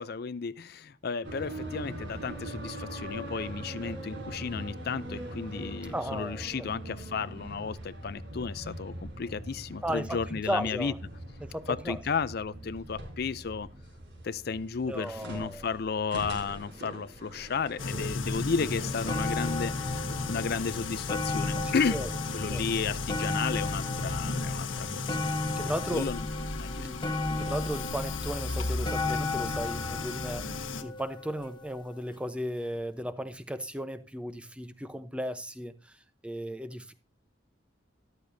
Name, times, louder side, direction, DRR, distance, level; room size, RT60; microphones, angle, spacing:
voice 1, 0.0-10.9 11.7-13.7 14.2-22.0 22.3-25.3 25.9-26.3 26.5-26.9, left 5 dB, 50° left, 0.5 m, -33 dB
sound 1, 1.2-21.1, right 1 dB, 60° right, 4.5 m, -42 dB
voice 2, 5.9-6.7 9.8-11.0 11.4-12.0 14.8-15.7 21.6-22.1 22.5-22.7 25.6-26.1 26.8-27.0 27.3-35.7 36.2-36.9, equal, 5° right, 0.7 m, -35 dB
sound 2, 17.8-30.8, left 3 dB, 80° left, 1.2 m, -34 dB
sound 3, 18.4-18.5 18.8-32.0 32.8-32.9, left 3 dB, 25° left, 1.1 m, -35 dB
13.5 x 12.0 x 2.7 m
head